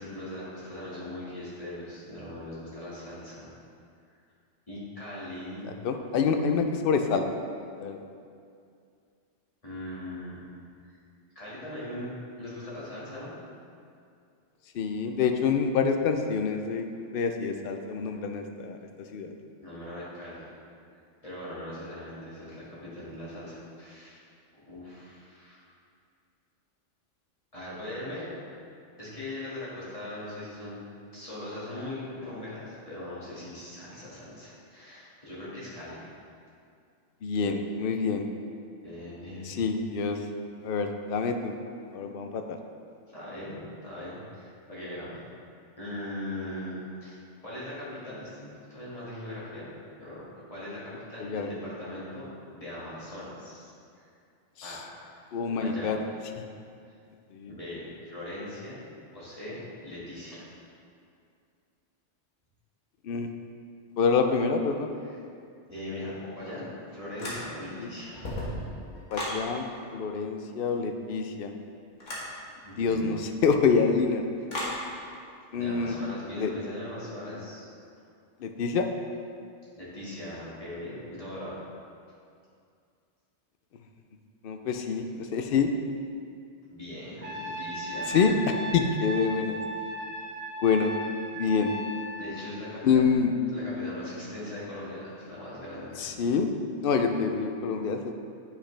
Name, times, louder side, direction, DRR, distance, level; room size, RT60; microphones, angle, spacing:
voice 1, 0.0-3.5 4.7-5.7 9.6-10.4 10.8-11.0 11.4-12.1 12.4-13.3 19.6-20.5 21.2-24.2 24.6-25.7 27.5-28.3 29.0-30.8 31.1-36.0 38.8-39.7 43.1-45.1 45.8-49.7 50.0-52.3 52.5-54.1 54.6-54.9 55.4-56.0 57.5-58.9 59.1-60.5 65.0-65.2 65.7-68.6 72.6-73.1 75.6-77.7 79.8-81.6 86.7-88.2 92.2-93.1 93.5-96.0, left 1 dB, 30° left, -9 dB, 2.0 m, -40 dB
voice 2, 5.8-7.2 7.8-8.0 14.7-16.8 17.1-18.8 19.1-19.3 37.2-38.2 39.5-40.2 40.6-41.5 41.9-42.6 51.2-51.6 55.3-56.0 57.3-57.6 63.0-63.3 64.0-65.0 67.8-67.9 69.1-71.5 72.8-73.2 73.4-74.2 75.5-75.9 76.4-76.5 78.4-78.8 84.4-85.7 88.1-88.3 88.7-89.6 90.6-90.9 91.4-91.7 92.8-93.3 96.0-96.5 96.8-98.1, left 5 dB, 60° left, 6 dB, 0.6 m, -26 dB
sound 1, 67.2-67.8 68.1-69.4 72.0-72.3 74.5-74.8, left 1 dB, 80° left, 1.8 m, -34 dB
Trumpet, 87.2-92.3, equal, 55° right, 1.1 m, -36 dB
8.3 x 5.9 x 3.3 m, 2.4 s
omnidirectional pair, 1.3 m